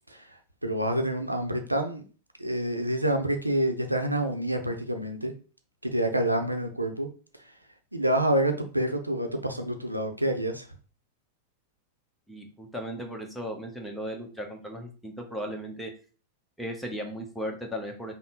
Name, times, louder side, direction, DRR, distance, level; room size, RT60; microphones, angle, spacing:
voice 1, 0.6-2.0 2.4-5.3 5.8-7.1 7.9-10.6, right 1 dB, 85° right, 5 dB, 0.7 m, -27 dB
voice 2, 12.3-15.9 16.6-18.1, equal, ahead, 2 dB, 1.0 m, -36 dB
5.5 x 2.2 x 3.9 m, 0.37 s
figure-of-eight pair, 90°, 0 cm